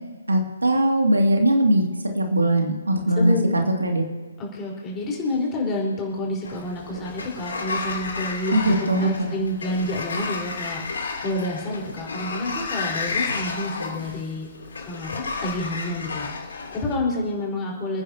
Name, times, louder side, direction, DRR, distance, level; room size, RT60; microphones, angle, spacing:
voice 1, 0.3-1.9 2.1-4.0 8.5-9.3, right 1 dB, 75° right, 2 dB, 2.4 m, -20 dB
voice 2, 3.2-3.5 4.4-10.8 11.2-14.5 14.9-18.0, left 1 dB, 15° left, -2 dB, 4.6 m, -28 dB
Sliding door, 6.4-17.0, left 4 dB, 60° left, 3.1 m, -32 dB
28.5 x 10.0 x 2.9 m, 1.3 s
figure-of-eight pair, 135°, 0 cm